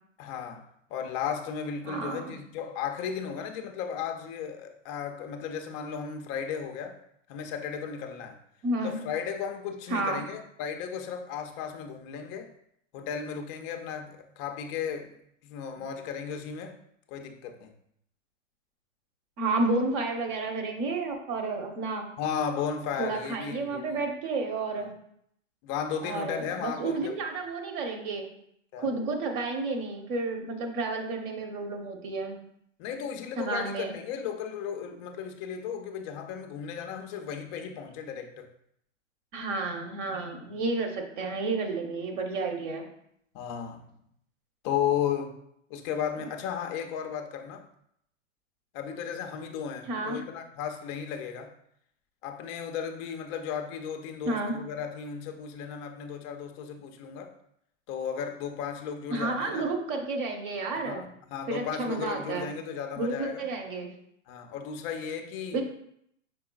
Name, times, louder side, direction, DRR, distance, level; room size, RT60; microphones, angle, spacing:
voice 1, 0.2-7.0 7.3-8.4 8.8-12.5 12.9-15.2 15.4-16.8 17.1-17.7 22.2-24.0 25.6-27.1 28.7-28.9 32.8-38.5 43.3-43.9 44.6-45.4 45.7-47.7 48.7-51.5 52.2-57.3 57.9-59.6 60.8-63.4 64.3-65.6, left 7 dB, 25° left, 0.4 m, -35 dB
voice 2, 1.8-2.4 8.6-9.0 9.9-10.2 19.4-22.1 23.0-24.9 26.0-28.2 28.8-32.4 33.4-34.0 39.3-42.9 46.2-46.3 49.9-50.3 54.3-54.6 59.1-61.1 61.5-62.5 63.0-63.9 65.5-65.6, right 3 dB, 40° right, 1.0 m, -31 dB
5.7 x 3.6 x 2.3 m
hypercardioid pair, 125°, 38 cm